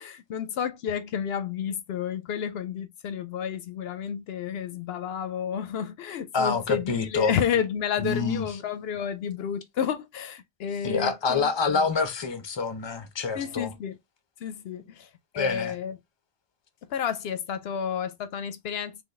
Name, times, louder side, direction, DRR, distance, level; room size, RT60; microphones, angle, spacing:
voice 1, 0.0-11.8 13.3-14.0 14.4-15.1 15.3-16.0 16.9-19.0, left 8 dB, 75° left, 0.8 m, -31 dB
voice 2, 6.3-7.4 8.0-8.6 10.8-13.7 15.4-15.7, left 4 dB, 30° left, 0.7 m, -27 dB
3.9 x 3.1 x 3.1 m
omnidirectional pair, 1.0 m